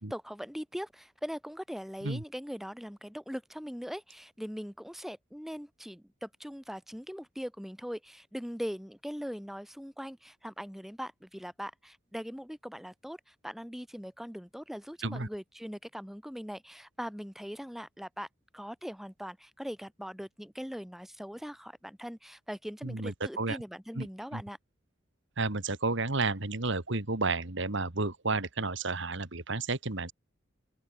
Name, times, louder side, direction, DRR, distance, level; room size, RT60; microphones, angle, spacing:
voice 1, 0.0-18.3 18.5-24.6, equal, ahead, 4.8 m, -41 dB
voice 2, 22.8-23.6 24.0-24.1 24.3-24.4 25.4-30.1, right 3 dB, 65° right, 2.1 m, -31 dB
open air
head